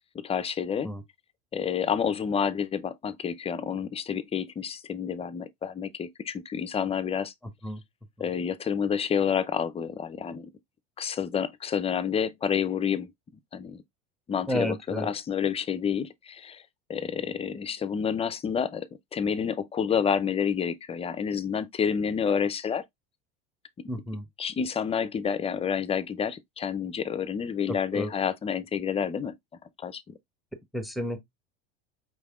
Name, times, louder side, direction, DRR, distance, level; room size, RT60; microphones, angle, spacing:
voice 1, 0.2-0.9 1.5-7.3 8.2-10.5 11.0-13.1 13.5-13.8 14.3-16.6 16.9-18.9 19.1-22.8 24.4-29.3 29.8-30.1, left 7 dB, 20° left, 0.5 m, -29 dB
voice 2, 14.5-15.1 23.9-24.2 27.7-28.1 30.7-31.2, equal, ahead, 0.9 m, -31 dB
5.2 x 3.4 x 2.3 m
supercardioid pair, 100°, 29 cm